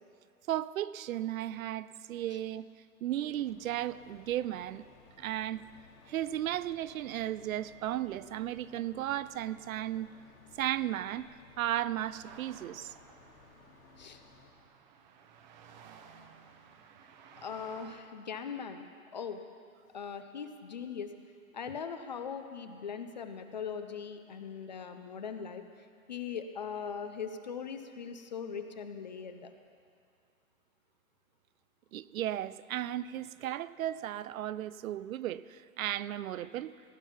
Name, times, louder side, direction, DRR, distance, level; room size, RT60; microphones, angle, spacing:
voice 1, 0.5-2.7 3.0-4.8 5.2-5.6 6.1-10.1 10.6-12.9 31.9-36.7, right 12 dB, 70° right, 17 dB, 0.5 m, -35 dB
sound 1, 3.1-14.5, left 3 dB, 70° left, 2.6 m, -59 dB
sound 2, 12.2-18.0, right 6 dB, 35° right, 0.8 m, -56 dB
voice 2, 17.4-18.8 19.1-19.4 19.9-21.2 21.5-29.5, left 6 dB, 35° left, 8 dB, 0.4 m, -40 dB
17.0 x 9.0 x 5.7 m, 2.2 s
hypercardioid pair, 160°, 43 cm